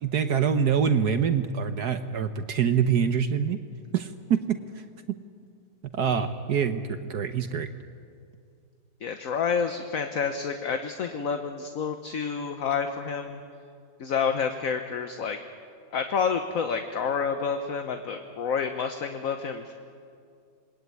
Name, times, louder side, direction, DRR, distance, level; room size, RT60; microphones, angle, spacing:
voice 1, 0.0-3.6 3.9-4.6 5.9-7.7, right 7 dB, 65° right, 9 dB, 1.4 m, -25 dB
voice 2, 9.0-13.4 14.0-15.4 15.9-19.7, left 6 dB, 50° left, 6 dB, 1.4 m, -29 dB
27.0 x 20.5 x 9.5 m, 2.4 s
omnidirectional pair, 2.0 m